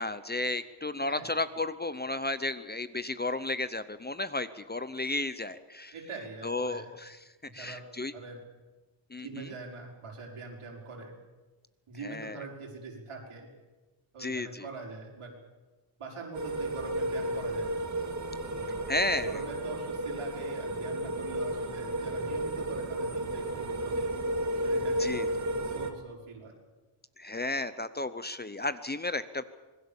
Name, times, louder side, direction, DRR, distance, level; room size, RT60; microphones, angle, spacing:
voice 1, 0.0-5.9 6.4-7.2 7.5-8.1 9.1-9.5 12.0-12.4 14.2-14.6 18.9-19.4 25.0-25.3 27.2-29.4, left 2 dB, 20° left, 13 dB, 0.7 m, -33 dB
voice 2, 5.9-6.9 7.5-7.8 8.1-8.4 9.2-11.1 11.9-13.5 14.1-15.3 16.0-17.7 18.5-18.9 19.2-24.1 24.5-25.4 25.6-26.5, right 3 dB, 85° right, 0 dB, 5.4 m, -43 dB
sound 1, 16.3-25.9, right 1 dB, 35° right, 2.2 m, -32 dB
26.0 x 20.5 x 7.2 m, 1.2 s
wide cardioid pair, 170°, 49 cm